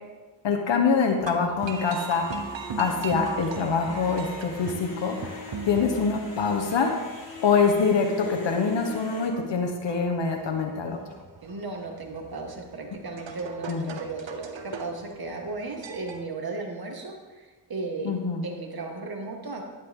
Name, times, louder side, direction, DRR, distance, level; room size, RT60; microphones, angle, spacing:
voice 1, 0.4-6.9 7.4-11.0 13.7-14.0 18.0-18.4, left 5 dB, 80° left, 3 dB, 1.2 m, -25 dB
sound 1, 1.2-16.3, right 5 dB, 90° right, 1.0 m, -40 dB
sound 2, 1.6-9.3, left 1 dB, 55° left, 3.0 m, -41 dB
voice 2, 11.4-18.2 18.4-19.6, right 3 dB, 55° right, 2 dB, 2.0 m, -35 dB
11.0 x 10.5 x 3.8 m, 1.3 s
cardioid pair, 50°, 43 cm